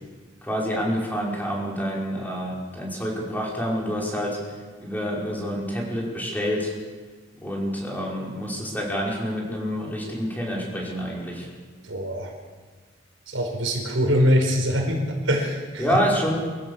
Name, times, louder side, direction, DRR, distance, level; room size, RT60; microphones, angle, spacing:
voice 1, 0.4-6.7 7.4-11.5 15.8-16.4, equal, 10° left, -3 dB, 5.5 m, -27 dB
voice 2, 11.8-12.3 13.3-15.9, equal, 80° right, 2 dB, 4.9 m, -23 dB
25.0 x 15.5 x 7.3 m, 1.5 s
head